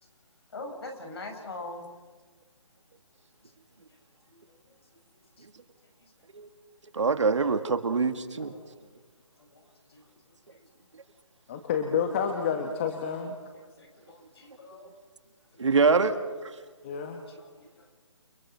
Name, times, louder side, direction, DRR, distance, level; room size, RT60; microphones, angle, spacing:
voice 1, 0.5-1.9 4.3-4.7 5.1-5.5 6.0-6.1 8.5-8.9 9.4-10.0 10.5-10.6 13.8-14.9 15.6-15.8 17.3-17.9, left 2 dB, 55° left, 3 dB, 6.6 m, -44 dB
voice 2, 6.9-8.5 15.6-16.2, right 4 dB, 70° right, 8 dB, 2.2 m, -24 dB
voice 3, 11.5-13.4 16.8-17.2, left 6 dB, 25° left, 4 dB, 1.7 m, -29 dB
30.0 x 24.5 x 6.0 m, 1.4 s
hypercardioid pair, 165°, 16 cm